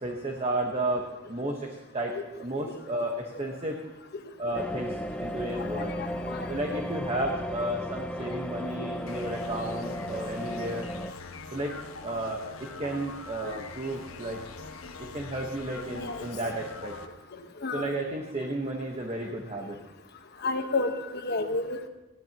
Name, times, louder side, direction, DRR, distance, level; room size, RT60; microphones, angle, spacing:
voice 1, 0.0-3.8 4.4-5.9 6.5-10.9 11.5-11.7 12.0-12.4 12.8-14.4 15.0-17.0 17.7-19.8, right 1 dB, 30° right, 1 dB, 1.2 m, -33 dB
sound 1, 4.5-11.1, left 1 dB, 5° left, 0.5 m, -35 dB
voice 2, 6.0-6.5 8.8-8.9 15.9-16.2 17.6-17.9 20.4-21.9, left 3 dB, 50° left, 5 dB, 1.2 m, -31 dB
sound 2, 9.1-17.1, left 4 dB, 90° left, 1.2 m, -43 dB
19.5 x 15.0 x 3.0 m, 1.0 s
head